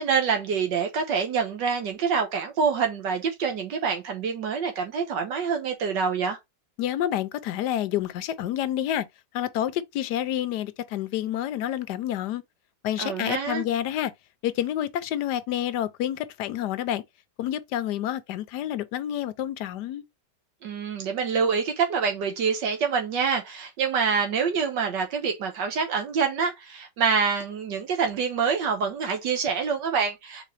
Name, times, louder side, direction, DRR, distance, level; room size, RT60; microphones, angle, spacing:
voice 1, 0.0-6.4 13.0-13.6 20.6-30.4, right 6 dB, 80° right, 1.6 m, -26 dB
voice 2, 6.8-9.1 9.3-12.4 12.8-14.1 14.4-17.0 17.4-20.0, left 11 dB, 75° left, 1.1 m, -28 dB
4.1 x 4.0 x 3.1 m
omnidirectional pair, 1.9 m